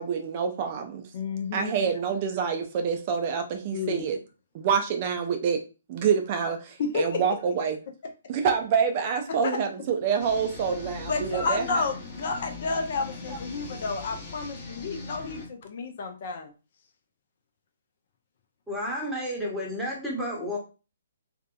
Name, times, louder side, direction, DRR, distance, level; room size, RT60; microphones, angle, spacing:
voice 1, 0.0-1.0 1.5-4.2 4.5-5.6 5.9-7.8 8.3-11.8, right 6 dB, 40° right, 6 dB, 0.4 m, -27 dB
voice 2, 1.1-1.7 3.7-4.0 6.8-7.2 9.3-9.5 11.0-16.5, left 4 dB, 50° left, 5 dB, 0.4 m, -31 dB
sound 1, 10.2-15.5, left 3 dB, 30° left, 0.8 m, -40 dB
voice 3, 18.7-20.6, equal, ahead, -5 dB, 0.9 m, -31 dB
2.6 x 2.1 x 2.3 m, 0.32 s
figure-of-eight pair, 135°, 0 cm